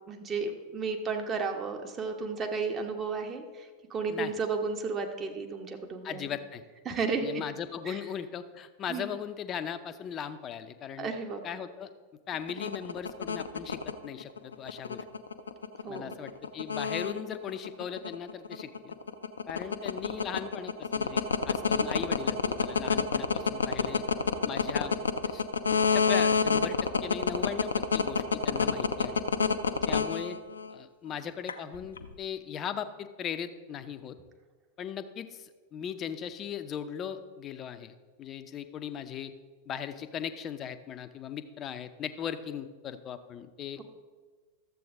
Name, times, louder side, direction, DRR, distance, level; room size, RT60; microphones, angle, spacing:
voice 1, 0.1-6.3 6.8-7.3 7.9-8.0 8.9-9.1 11.0-11.4 15.8-16.2 30.0-30.2, right 4 dB, 25° right, 4 dB, 1.1 m, -33 dB
voice 2, 6.0-6.6 7.2-11.1 11.4-11.9 12.3-15.0 15.9-18.9 19.5-24.0 24.4-25.0 25.3-25.4 25.9-29.2 29.9-30.4 30.7-34.2 34.8-37.9 38.2-39.3 39.7-43.8, left 8 dB, 30° left, 10 dB, 0.6 m, -38 dB
sound 1, 12.3-30.7 31.5-32.1, left 5 dB, 70° left, 0.5 m, -27 dB
12.5 x 7.7 x 3.6 m, 1.4 s
figure-of-eight pair, 90°, 0 cm